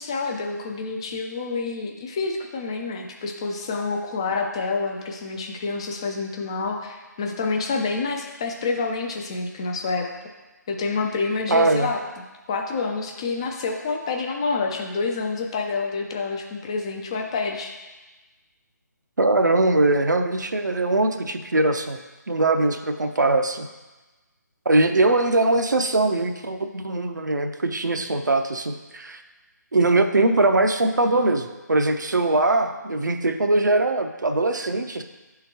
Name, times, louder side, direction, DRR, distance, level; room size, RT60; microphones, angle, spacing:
voice 1, 0.0-10.1 10.7-12.0 12.5-17.7, left 4 dB, 15° left, 2 dB, 0.3 m, -28 dB
voice 2, 11.5-11.9 19.2-22.0 22.3-23.7 24.7-29.2 29.7-35.0, right 2 dB, 70° right, 6 dB, 0.6 m, -21 dB
10.0 x 3.8 x 2.9 m, 1.2 s
figure-of-eight pair, 150°, 10 cm